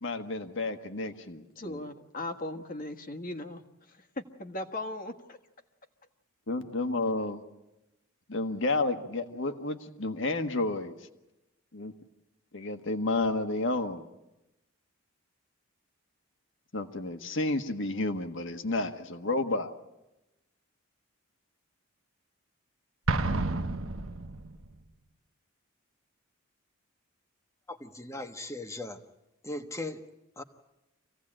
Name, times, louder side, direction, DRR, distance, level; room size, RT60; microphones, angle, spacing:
voice 1, 0.0-1.8 6.5-7.4 8.3-11.0 11.7-11.9 12.5-14.0 16.7-19.7, left 2 dB, 60° left, 7 dB, 1.5 m, -31 dB
voice 2, 1.5-3.6 3.9-5.4, left 2 dB, 40° left, 6 dB, 1.5 m, -38 dB
Explosion, 23.1-24.7, right 2 dB, 70° right, 1.1 m, -30 dB
voice 3, 27.7-29.0 29.4-30.0 30.4-30.5, left 2 dB, 15° left, 6 dB, 1.2 m, -38 dB
26.0 x 17.0 x 8.8 m, 0.98 s
head